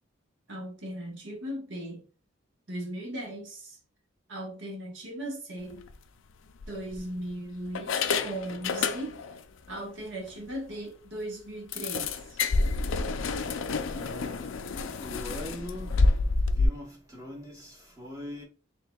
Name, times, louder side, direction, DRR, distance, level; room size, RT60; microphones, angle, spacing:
voice 1, 0.5-2.0 2.7-3.8 4.3-5.9 6.7-9.2 9.7-12.4, right 1 dB, 65° right, 1.2 m, -38 dB
sound 1, 5.7-5.9 6.6-7.3 7.7-9.4 9.7-9.9 10.3-10.4 10.7-10.8 11.7-16.7, left 3 dB, 70° left, 0.4 m, -28 dB
voice 2, 13.9-14.6 15.0-15.9 16.6-18.4, left 1 dB, 15° right, 0.9 m, -41 dB
4.6 x 3.5 x 2.3 m
head